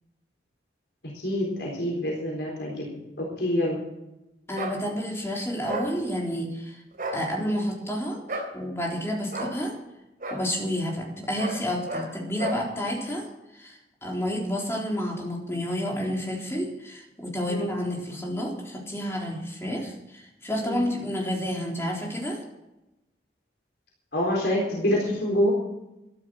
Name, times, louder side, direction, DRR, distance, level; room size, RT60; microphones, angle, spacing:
voice 1, 1.0-3.8 17.5-17.7 20.6-20.8 24.1-25.5, equal, 70° left, -3 dB, 4.3 m, -27 dB
voice 2, 4.5-6.8 7.1-8.2 8.5-9.7 10.3-13.3 13.5-22.4, equal, 15° left, -2 dB, 3.8 m, -30 dB
sound 1, 4.5-4.8 5.7-5.9 6.9-7.2 8.3-8.5 9.3-9.5 10.2-10.4 11.4-11.6 11.9-12.1 12.4-12.6, right 1 dB, 50° right, 3.7 m, -32 dB
13.5 x 12.0 x 6.4 m, 0.93 s
head